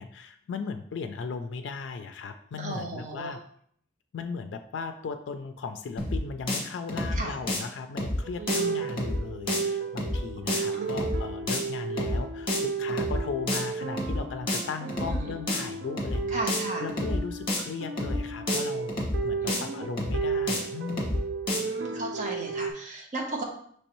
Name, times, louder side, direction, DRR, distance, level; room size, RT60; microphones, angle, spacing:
voice 1, 0.0-3.4 4.1-16.4 16.8-19.0 19.2-21.2, left 5 dB, 85° left, 7 dB, 0.3 m, -37 dB
voice 2, 2.6-3.3 7.1-7.3 8.4-8.8 10.7-11.2 15.0-15.3 16.3-16.9 19.4-19.9 21.6-23.4, right 2 dB, 45° right, 0 dB, 0.9 m, -35 dB
sound 1, 6.0-6.2 6.5-6.6 6.9-7.2 7.5-7.6 8.0-8.2 8.5-8.6 8.9-9.2 9.5-9.6 10.0-10.2 10.5-10.6 10.9-11.2 11.5-11.6 12.0-12.2 12.5-12.6 12.9-13.2 13.5-13.6 14.0-14.2 14.5-14.6 14.9-15.2 15.5-15.6 16.0-16.2 16.5-16.6 16.9-17.2 17.5-17.6 18.0-18.2 18.5-18.6 18.9-19.2 19.5-19.6 20.0-20.2 20.5-20.6 20.9-21.2 21.5-21.6, left 1 dB, 30° left, 1.0 m, -29 dB
sound 2, 8.2-22.7, right 4 dB, 60° right, 0.4 m, -34 dB
5.2 x 3.2 x 3.0 m, 0.64 s
head